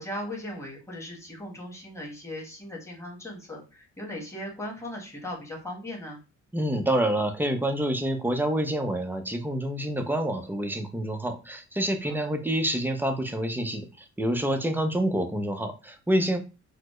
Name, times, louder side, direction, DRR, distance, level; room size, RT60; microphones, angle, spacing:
voice 1, 0.0-6.2 12.0-12.3, left 1 dB, 10° left, -2 dB, 1.4 m, -38 dB
voice 2, 6.5-16.4, right 1 dB, 5° right, 6 dB, 0.5 m, -27 dB
4.1 x 2.0 x 3.1 m, 0.31 s
cardioid pair, 90°, 30 cm